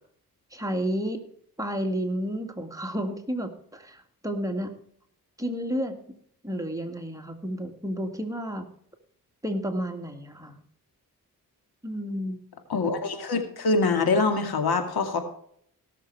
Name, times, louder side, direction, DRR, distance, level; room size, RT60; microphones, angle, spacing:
voice 1, 0.5-1.2 1.6-4.7 5.4-6.0 6.4-8.7 9.4-10.6 11.8-12.4, equal, 10° right, 4 dB, 2.0 m, -31 dB
voice 2, 12.7-15.2, left 3 dB, 80° left, 6 dB, 2.2 m, -24 dB
17.5 x 6.8 x 4.7 m, 0.64 s
cardioid pair, 70°, 37 cm